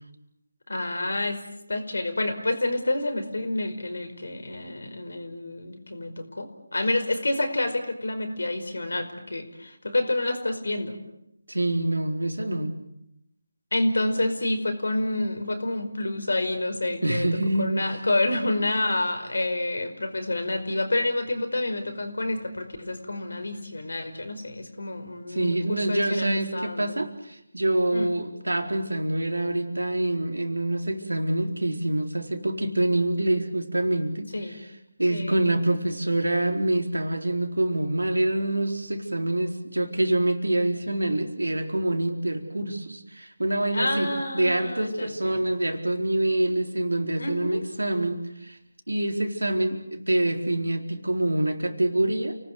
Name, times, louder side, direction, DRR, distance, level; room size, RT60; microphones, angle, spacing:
voice 1, 0.7-1.4 1.7-6.5 6.7-11.0 13.7-17.3 17.6-27.0 27.9-28.1 34.3-34.6 35.1-35.4 43.7-45.4 47.2-47.6, left 2 dB, 70° left, 7 dB, 5.2 m, -28 dB
voice 2, 11.5-12.7 17.0-18.0 25.3-34.6 35.0-48.6 48.9-52.4, right 1 dB, 85° right, 5 dB, 4.2 m, -26 dB
30.0 x 19.5 x 8.0 m, 0.79 s
figure-of-eight pair, 160°, 0 cm